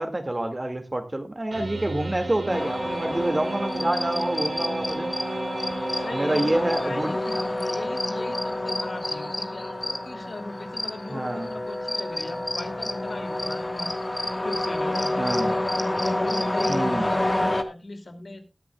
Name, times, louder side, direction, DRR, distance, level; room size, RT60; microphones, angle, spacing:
voice 1, 0.0-5.1 6.1-7.1 11.1-11.5 15.2-15.6 16.7-17.1, right 1 dB, 35° right, 7 dB, 2.1 m, -27 dB
sound 1, 1.5-7.3, right 3 dB, 90° right, 4.0 m, -34 dB
sound 2, 2.5-17.6, left 1 dB, 30° left, 1.5 m, -28 dB
voice 2, 5.9-14.0 14.4-15.5 16.2-18.4, left 2 dB, 70° left, 6 dB, 2.6 m, -39 dB
20.5 x 10.5 x 2.3 m, 0.26 s
wide cardioid pair, 50°, 0 cm